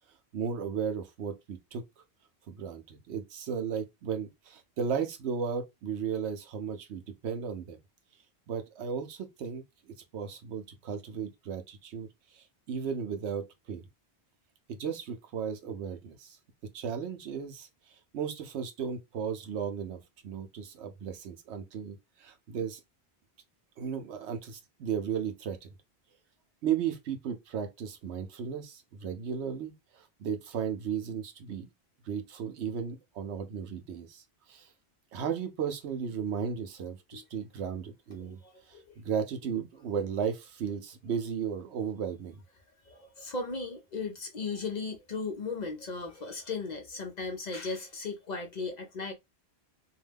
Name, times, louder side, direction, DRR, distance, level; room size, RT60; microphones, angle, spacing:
voice 1, 0.3-1.8 2.5-7.8 8.5-13.8 14.7-16.4 16.7-22.8 23.8-25.7 26.6-31.7 32.0-34.7 35.1-38.4 38.7-42.3, right 7 dB, 85° right, 1.0 m, -35 dB
voice 2, 38.2-39.0 42.8-49.1, left 4 dB, 45° left, 0.7 m, -37 dB
2.7 x 2.2 x 3.3 m
omnidirectional pair, 1.1 m